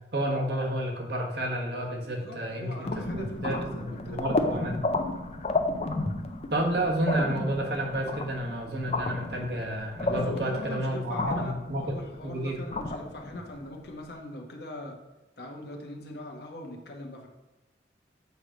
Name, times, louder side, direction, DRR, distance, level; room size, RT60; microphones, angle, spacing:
voice 1, 0.1-2.9 3.1-4.8 6.5-11.8 12.2-12.6, right 1 dB, 65° right, 1 dB, 1.3 m, -30 dB
voice 2, 2.0-4.5 10.1-11.6 11.8-15.0 15.4-17.3, left 1 dB, 65° left, 1 dB, 1.1 m, -41 dB
sound 1, 2.8-14.0, left 2 dB, 35° left, 0.5 m, -32 dB
8.2 x 3.2 x 5.1 m, 1.0 s
head